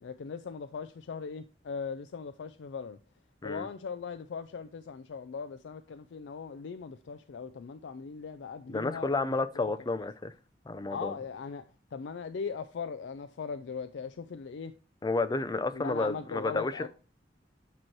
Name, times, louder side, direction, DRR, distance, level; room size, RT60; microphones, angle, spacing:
voice 1, 0.0-3.0 3.4-9.7 10.9-14.7 15.7-16.9, left 5 dB, 80° left, 0.4 m, -39 dB
voice 2, 8.7-10.3 10.7-11.1 15.0-16.9, left 3 dB, 25° left, 0.4 m, -31 dB
8.8 x 3.0 x 4.5 m
head